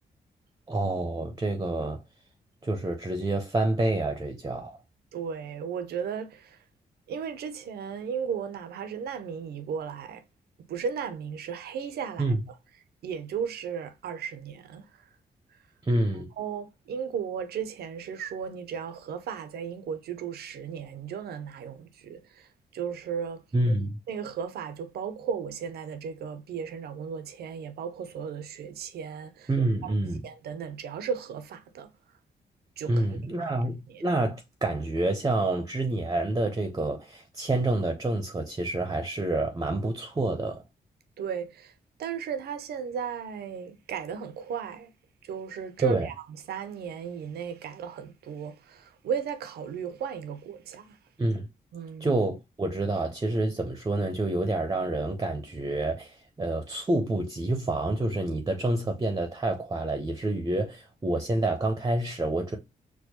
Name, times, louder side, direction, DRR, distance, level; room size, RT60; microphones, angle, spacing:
voice 1, 0.7-2.0 2.6-4.8 12.2-12.4 15.8-16.3 23.5-24.0 29.5-30.2 32.9-40.6 45.8-46.1 51.2-51.5 52.0-62.6, right 2 dB, 25° right, 0.7 m, -28 dB
voice 2, 5.1-6.6 7.1-10.2 10.6-12.3 13.0-15.1 15.5-15.6 16.4-23.5 24.1-29.5 29.8-29.9 30.2-31.9 32.8-33.1 33.4-33.5 33.9-34.0 41.2-41.7 42.0-44.9 45.2-51.0 51.7-52.2, right 7 dB, 80° right, 0.6 m, -35 dB
4.5 x 2.2 x 2.8 m
cardioid pair, 65°, 16 cm